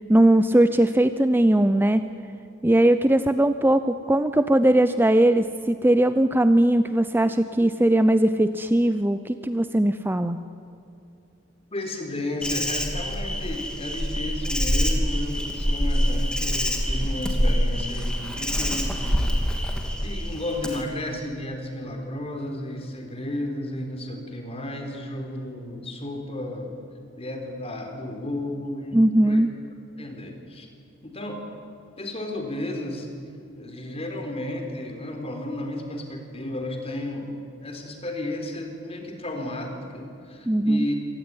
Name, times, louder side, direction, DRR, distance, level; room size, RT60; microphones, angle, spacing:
voice 1, 0.1-2.0 2.6-10.4 28.9-29.5 40.5-40.9, right 1 dB, 10° right, 11 dB, 0.6 m, -19 dB
voice 2, 11.7-26.8 27.1-29.4 30.0-30.7 31.0-31.4 32.0-33.1 33.6-40.9, left 1 dB, 30° left, 4 dB, 4.1 m, -33 dB
Insect, 12.4-20.8, equal, 5° left, 2.8 m, -25 dB
26.0 x 19.0 x 9.8 m, 2.7 s
head